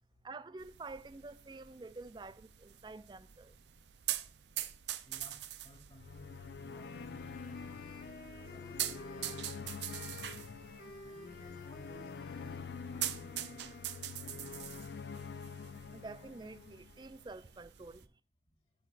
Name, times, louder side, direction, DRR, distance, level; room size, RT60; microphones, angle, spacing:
voice 1, 0.2-3.5 15.9-18.1, right 3 dB, 25° right, 0.4 m, -48 dB
sound 1, 0.6-18.0, right 12 dB, 80° right, 0.5 m, -45 dB
voice 2, 5.0-7.8 8.4-10.6 11.0-13.8 14.2-14.8 18.4-18.5, equal, 25° left, 2.4 m, -57 dB
sound 2, 5.9-17.2, left 5 dB, 70° left, 0.3 m, -47 dB
sound 3, 6.6-14.1, left 3 dB, 50° left, 1.4 m, -52 dB
12.5 x 6.5 x 2.5 m
head